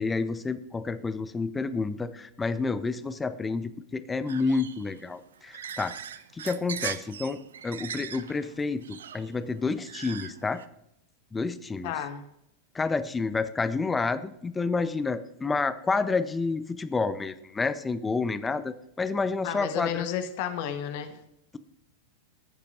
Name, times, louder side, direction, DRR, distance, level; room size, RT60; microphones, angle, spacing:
voice 1, 0.0-6.0 6.3-10.6 11.3-11.9 12.7-20.1, left 4 dB, 15° left, 12 dB, 0.6 m, -29 dB
sound 1, 4.3-10.7, right 8 dB, 65° right, 0.4 m, -40 dB
voice 2, 11.8-12.2 19.4-21.2, left 9 dB, 50° left, 8 dB, 1.0 m, -32 dB
15.0 x 6.8 x 2.5 m, 0.79 s
figure-of-eight pair, 90°, 0 cm